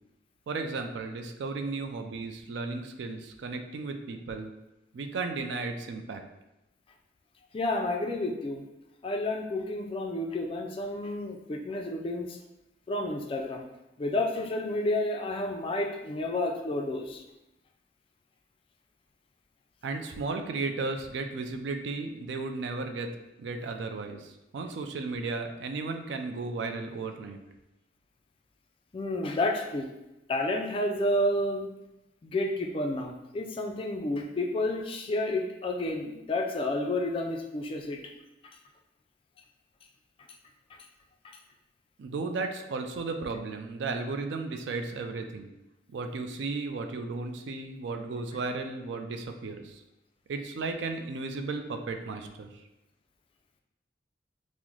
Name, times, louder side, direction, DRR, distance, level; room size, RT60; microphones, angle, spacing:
voice 1, 0.5-4.5 4.9-6.2 19.8-23.1 23.4-27.4 42.0-45.5 45.9-49.8 50.3-52.5, right 3 dB, 75° right, 5 dB, 0.3 m, -34 dB
voice 2, 7.5-8.6 9.0-12.4 12.9-13.6 14.0-17.2 28.9-29.9 30.3-31.7 32.2-38.1, left 1 dB, 30° left, 2 dB, 0.3 m, -30 dB
3.7 x 2.0 x 3.0 m, 0.93 s
head